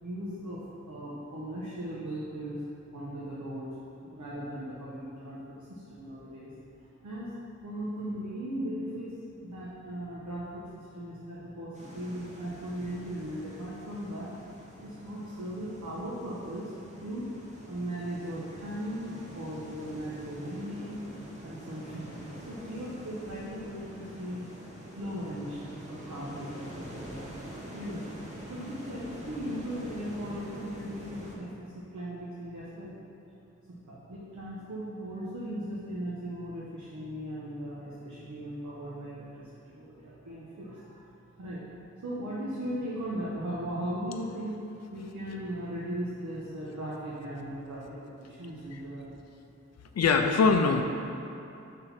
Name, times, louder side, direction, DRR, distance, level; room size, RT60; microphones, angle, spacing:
voice 1, 0.0-2.6 2.9-3.7 4.0-5.4 5.7-6.5 6.8-7.3 7.6-9.1 9.4-14.3 14.8-16.7 17.0-17.4 17.6-21.0 21.4-24.4 24.9-27.2 27.7-32.9 33.9-41.0 41.4-41.6 42.0-49.3, equal, 80° right, -7 dB, 1.1 m, -38 dB
sound 1, 11.7-31.3, equal, 25° right, 1.2 m, -45 dB
voice 2, 49.9-50.8, left 4 dB, 60° left, 5 dB, 0.5 m, -22 dB
6.1 x 3.8 x 5.8 m, 2.7 s
wide cardioid pair, 90°, 29 cm